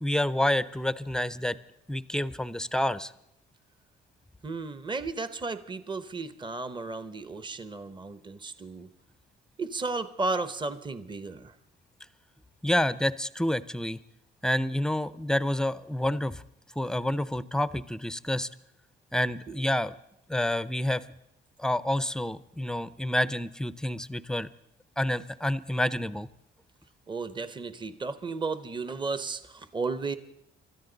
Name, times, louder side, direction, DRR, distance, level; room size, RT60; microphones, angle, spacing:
voice 1, 0.0-1.6 1.9-3.1 12.6-14.0 14.4-16.4 16.8-18.5 19.1-19.9 20.3-21.0 21.6-24.5 25.0-26.3, left 1 dB, 5° left, 16 dB, 0.6 m, -28 dB
voice 2, 4.4-8.9 9.6-11.5 19.5-19.6 27.1-30.2, right 3 dB, 25° right, 12 dB, 0.9 m, -34 dB
24.0 x 13.5 x 4.0 m, 0.79 s
cardioid pair, 90°, 20 cm